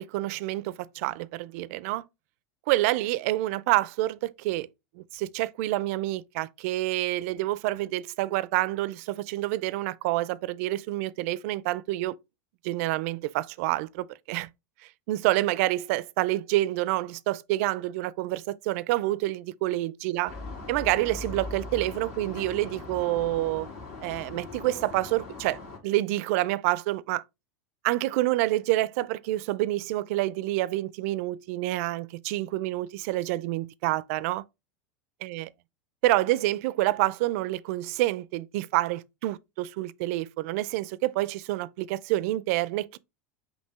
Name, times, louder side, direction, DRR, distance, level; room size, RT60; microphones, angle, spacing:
voice 1, 0.0-2.0 2.7-4.7 5.0-12.2 12.6-14.5 15.1-20.3 20.7-23.7 24.0-27.2 27.8-34.4 35.3-35.5 36.0-43.0, right 17 dB, 65° right, 0.4 m, -28 dB
sound 1, 20.3-25.8, left 3 dB, 70° left, 2.5 m, -40 dB
5.5 x 2.7 x 3.5 m
supercardioid pair, 135°, 8 cm